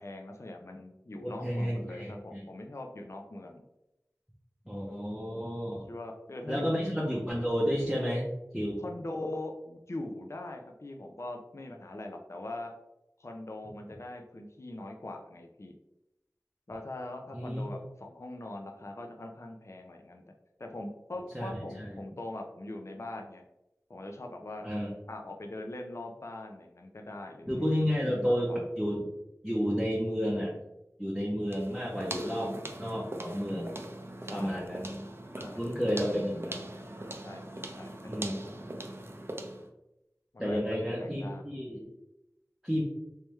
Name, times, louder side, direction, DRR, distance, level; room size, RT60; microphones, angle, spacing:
voice 1, 0.0-3.6 5.9-6.9 8.8-12.8 13.2-15.8 16.7-20.2 20.6-23.4 23.9-24.7 25.1-28.6 34.2-34.6 35.4-35.6 37.2-38.6 40.3-41.4, left 1 dB, 50° left, 3 dB, 0.4 m, -42 dB
voice 2, 1.2-2.4 4.7-5.9 6.5-8.8 17.3-17.7 21.3-22.0 24.6-24.9 27.5-29.1 29.4-30.5 31.0-33.8 34.3-35.0 35.6-36.7 38.1-38.4 40.4-41.8 42.6-42.8, equal, 5° right, -4 dB, 0.7 m, -31 dB
sound 1, 31.5-39.7, right 1 dB, 40° right, 0.5 m, -41 dB
3.3 x 3.1 x 3.1 m, 0.90 s
wide cardioid pair, 40°, 6 cm